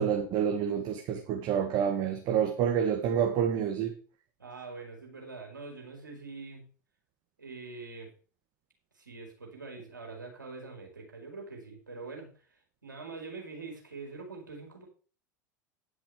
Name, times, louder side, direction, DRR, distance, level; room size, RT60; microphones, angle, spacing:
voice 1, 0.0-3.9, right 8 dB, 45° right, 1.9 m, -28 dB
voice 2, 4.4-6.6 7.4-8.1 8.9-14.8, right 3 dB, 90° right, 4.0 m, -44 dB
10.5 x 6.3 x 6.5 m
figure-of-eight pair, 85°, 10 cm